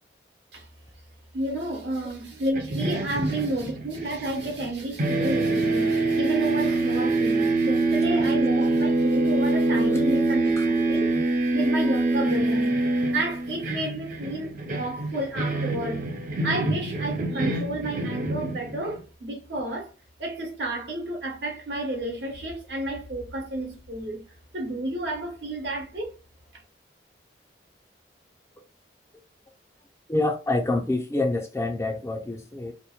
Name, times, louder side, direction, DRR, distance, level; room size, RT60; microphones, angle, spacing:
voice 1, 1.3-12.8 13.1-16.0 16.4-19.9 20.2-24.2 24.5-26.1, right 1 dB, 70° right, 1.0 m, -31 dB
sound 1, 2.5-4.7 5.0-19.0, right 2 dB, 45° right, 0.5 m, -25 dB
voice 2, 30.1-32.7, left 2 dB, 15° left, 0.3 m, -27 dB
2.9 x 2.1 x 2.2 m
head